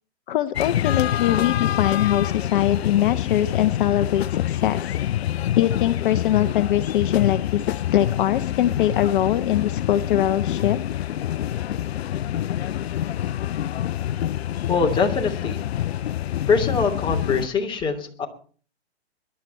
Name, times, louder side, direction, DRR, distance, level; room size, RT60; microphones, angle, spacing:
voice 1, 0.3-5.0 5.6-10.8, left 12 dB, 50° left, 11 dB, 0.9 m, -22 dB
sound 1, 0.5-17.5, left 11 dB, 65° left, 0.6 m, -26 dB
voice 2, 14.7-15.6 16.5-18.3, left 4 dB, 15° left, 2 dB, 3.0 m, -23 dB
22.0 x 11.5 x 4.4 m, 0.42 s
hypercardioid pair, 130°, 33 cm